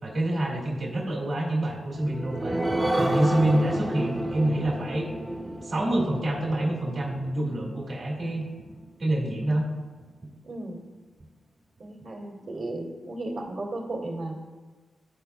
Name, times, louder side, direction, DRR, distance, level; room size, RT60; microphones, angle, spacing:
voice 1, 0.0-5.1 5.6-8.7 9.0-9.7, right 1 dB, 55° right, -3 dB, 1.9 m, -27 dB
sound 1, 1.8-8.9 9.3-9.4 9.8-9.9, right 1 dB, 20° right, 0.7 m, -31 dB
voice 2, 10.4-10.8 11.8-14.4, right 2 dB, 70° right, -6 dB, 1.8 m, -35 dB
11.5 x 4.5 x 2.3 m, 1.3 s
cardioid pair, 60°, 0 cm